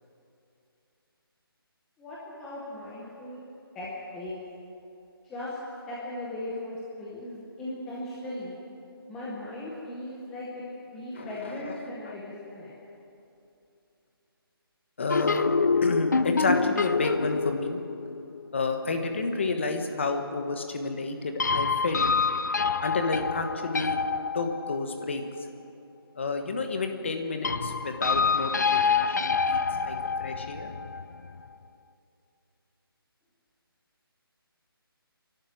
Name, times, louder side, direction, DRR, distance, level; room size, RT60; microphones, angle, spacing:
voice 1, 2.0-3.4 3.7-4.3 5.2-5.6 5.9-8.5 9.1-10.6 10.9-12.7, left 1 dB, 5° left, -7 dB, 0.7 m, -38 dB
voice 2, 11.1-11.8 12.1-12.2 15.0-15.4 15.8-17.8 18.5-22.1 22.8-24.0 24.3-25.2 26.2-30.7, left 3 dB, 30° left, 6 dB, 1.4 m, -30 dB
sound 1, 15.1-18.6 21.4-25.0 27.4-31.5, left 5 dB, 45° left, 0.5 m, -27 dB
27.0 x 12.0 x 9.1 m, 2.8 s
hypercardioid pair, 180°, 13 cm